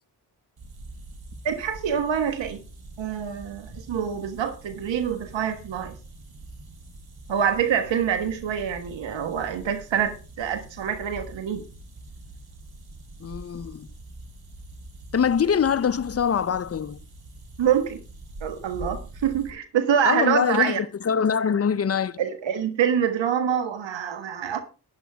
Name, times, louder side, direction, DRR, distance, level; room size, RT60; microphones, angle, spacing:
sound 1, 0.6-19.5, right 2 dB, 55° right, 3.5 m, -44 dB
voice 1, 1.4-2.6 3.0-6.0 7.3-11.6 17.6-18.0 18.4-20.8 22.2-24.6, right 8 dB, 75° right, 1.4 m, -26 dB
voice 2, 13.2-13.9 15.1-17.0 20.0-20.8 21.0-22.2, left 7 dB, 35° left, 0.7 m, -23 dB
11.5 x 10.5 x 3.5 m
supercardioid pair, 45°, 45 cm